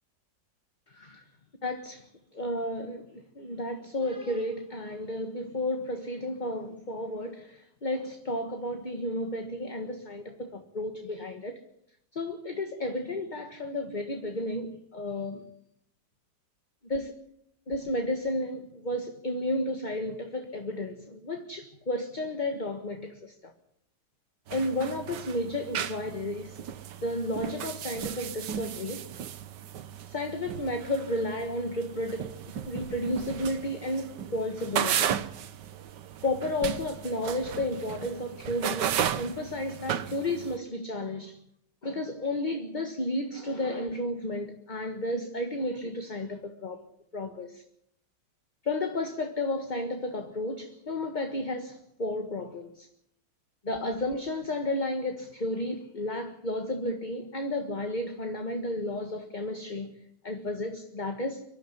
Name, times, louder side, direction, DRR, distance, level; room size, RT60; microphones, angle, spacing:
voice 1, 0.9-1.2 1.6-2.0 2.3-11.6 12.1-15.5 16.8-17.1 17.7-23.5 24.5-26.6 27.0-29.1 30.1-32.3 32.7-35.1 36.2-41.4 41.8-46.8 47.1-47.6 48.6-52.9 53.6-59.9 60.2-61.4, left 1 dB, 30° left, 1.6 m, -32 dB
sound 1, 24.5-40.6, right 9 dB, 85° right, 1.6 m, -35 dB
24.5 x 12.0 x 9.9 m
omnidirectional pair, 1.8 m